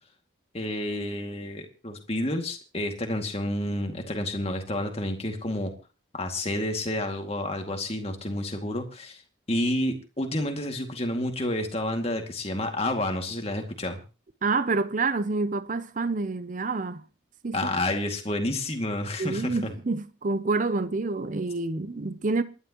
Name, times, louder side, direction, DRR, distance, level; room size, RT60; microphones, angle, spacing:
voice 1, 0.5-5.7 6.1-9.2 9.5-14.0 17.5-19.7, left 1 dB, 30° left, 2.3 m, -30 dB
voice 2, 14.4-17.0 17.4-17.6 19.2-22.4, right 3 dB, 40° right, 0.6 m, -27 dB
28.0 x 11.0 x 3.0 m
head